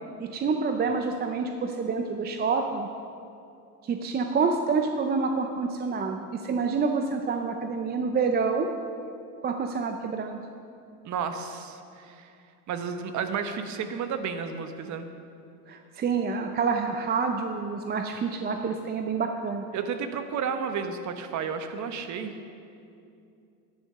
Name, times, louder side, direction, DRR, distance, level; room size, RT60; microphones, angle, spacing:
voice 1, 0.2-2.9 3.8-8.7 9.4-10.4 15.7-19.7, right 5 dB, 20° right, 5 dB, 0.6 m, -27 dB
voice 2, 11.0-12.3 12.7-15.1 19.7-22.3, right 6 dB, 40° right, 8 dB, 1.1 m, -32 dB
10.5 x 9.9 x 6.6 m, 2.6 s
supercardioid pair, 105°, 46 cm